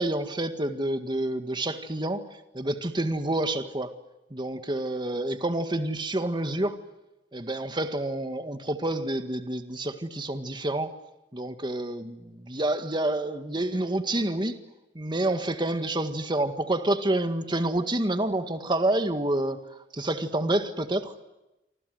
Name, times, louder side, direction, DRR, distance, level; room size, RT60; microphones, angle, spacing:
voice 1, 0.0-2.3 2.5-3.9 4.3-6.8 7.3-11.0 11.3-14.6 15.0-19.6 19.9-21.1, right 1 dB, 25° right, 8 dB, 1.8 m, -28 dB
29.0 x 25.5 x 7.9 m, 0.97 s
head